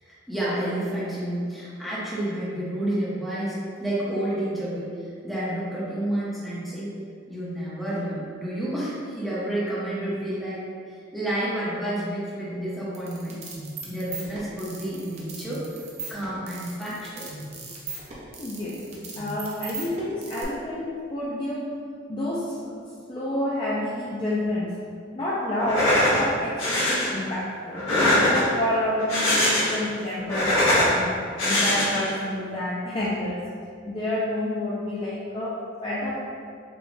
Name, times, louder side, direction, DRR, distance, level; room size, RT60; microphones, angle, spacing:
voice 1, 0.0-4.9 5.2-6.9 7.3-10.6 11.1-13.4 13.9-15.6 16.1-17.3, right 1 dB, ahead, -9 dB, 0.9 m, -30 dB
sound 1, 12.9-20.4, right 4 dB, 35° right, 0.6 m, -38 dB
voice 2, 18.4-21.7 22.1-22.8 23.1-24.7 25.1-27.8 28.2-31.1 31.4-33.4 33.9-36.2, left 1 dB, 25° left, -8 dB, 0.4 m, -29 dB
sound 2, 25.6-26.2 26.6-27.1 27.7-28.6 29.0-29.9 30.2-30.9 31.4-32.1, left 1 dB, 90° left, 1.1 m, -22 dB
5.0 x 2.3 x 3.2 m, 2.3 s
head